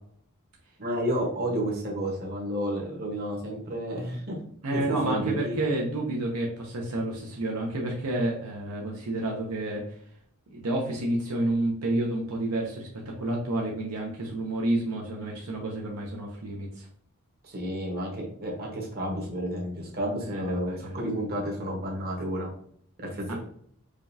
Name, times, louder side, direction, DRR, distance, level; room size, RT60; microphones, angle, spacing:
voice 1, 0.8-4.4 4.7-5.6 17.4-22.5 23.0-23.3, right 1 dB, 45° right, -1 dB, 1.1 m, -31 dB
voice 2, 4.6-9.8 10.5-16.9 20.3-20.9 23.3-23.4, right 1 dB, 85° right, -1 dB, 0.8 m, -30 dB
5.0 x 2.4 x 2.7 m, 0.62 s
head